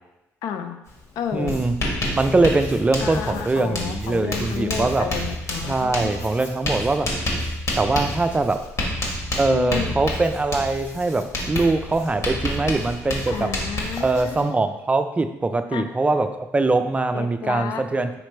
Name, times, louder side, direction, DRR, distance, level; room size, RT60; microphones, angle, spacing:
voice 1, 0.4-0.8 1.2-1.6 3.0-6.3 9.5-9.9 13.3-14.5 15.7-15.8 17.1-17.8, left 8 dB, 75° left, 8 dB, 0.4 m, -31 dB
Writing, 0.9-1.0 1.3-14.4, left 1 dB, 50° left, 1.3 m, -29 dB
voice 2, 1.3-1.8 2.1-5.1 5.6-7.1 7.8-8.7 9.4-13.5 14.0-18.1, right 3 dB, 20° right, 9 dB, 0.4 m, -22 dB
5.1 x 3.2 x 3.2 m, 0.98 s
supercardioid pair, 70°, 6 cm